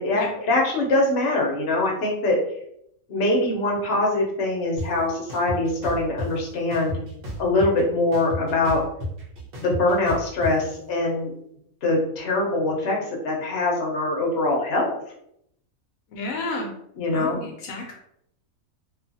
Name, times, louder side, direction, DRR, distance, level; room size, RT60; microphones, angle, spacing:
voice 1, 0.0-2.4 3.1-7.0 7.4-8.8 9.6-11.3 11.8-13.0 13.2-14.9 17.0-17.4, left 2 dB, 55° left, -1 dB, 0.9 m, -23 dB
sound 1, 4.8-4.9 5.3-6.3 6.7-7.8 8.1-10.5, left 1 dB, 50° right, 0.9 m, -32 dB
voice 2, 16.1-16.7 17.1-18.0, left 2 dB, 75° left, 0 dB, 1.0 m, -31 dB
2.6 x 2.4 x 2.6 m, 0.74 s
omnidirectional pair, 1.5 m